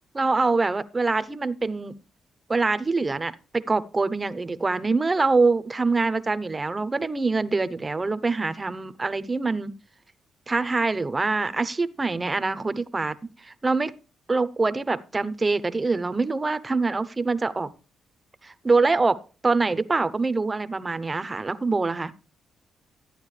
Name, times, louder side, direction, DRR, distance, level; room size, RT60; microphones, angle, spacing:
voice 1, 0.1-1.9 2.5-9.7 10.5-13.9 14.3-17.7 18.4-22.1, right 3 dB, 25° right, 15 dB, 0.7 m, -24 dB
14.0 x 9.4 x 3.2 m, 0.34 s
cardioid pair, 90°, 0 cm